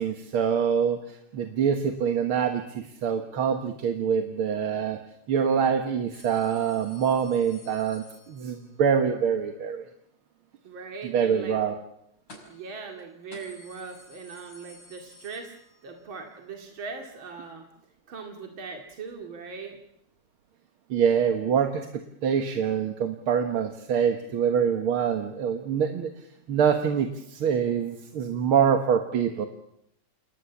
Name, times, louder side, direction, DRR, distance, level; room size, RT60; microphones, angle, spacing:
voice 1, 0.0-5.0 5.3-9.9 11.1-11.7 20.9-26.1 26.5-29.5, right 7 dB, 90° right, 6 dB, 2.3 m, -25 dB
sound 1, 6.1-8.8 12.3-12.7 13.0-13.1 13.3-16.0 16.4-16.5 17.5-17.6, left 2 dB, 85° left, 6.5 m, -52 dB
voice 2, 10.6-11.6 12.4-15.5 15.8-17.7 18.1-19.8, right 4 dB, 70° right, 3 dB, 3.1 m, -40 dB
28.5 x 20.0 x 7.2 m, 0.77 s
omnidirectional pair, 2.3 m